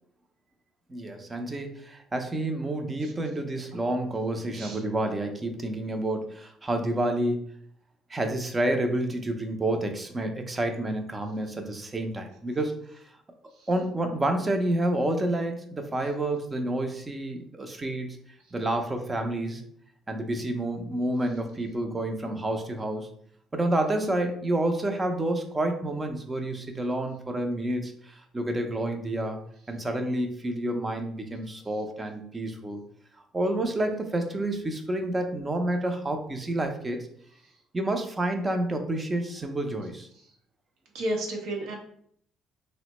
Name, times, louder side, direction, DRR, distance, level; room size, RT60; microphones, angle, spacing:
voice 1, 0.9-7.4 8.1-13.0 13.7-18.1 18.5-19.6 20.1-23.1 23.5-29.4 29.7-32.8 33.3-37.1 37.7-40.1, right 1 dB, 25° right, 5 dB, 0.5 m, -29 dB
voice 2, 40.9-41.7, right 1 dB, 80° right, 1 dB, 0.8 m, -32 dB
3.3 x 2.1 x 2.9 m, 0.64 s
cardioid pair, 90°, 0 cm